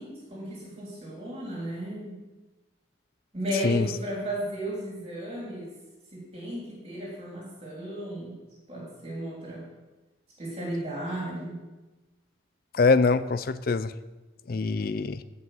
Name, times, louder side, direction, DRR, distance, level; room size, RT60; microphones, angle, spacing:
voice 1, 0.0-2.2 3.3-5.7 6.1-8.4 8.7-9.7 10.4-11.6, right 1 dB, 30° right, -5 dB, 3.2 m, -34 dB
voice 2, 12.7-13.9 14.5-15.2, left 4 dB, 50° left, 14 dB, 0.4 m, -23 dB
10.5 x 5.5 x 7.7 m, 1.1 s
head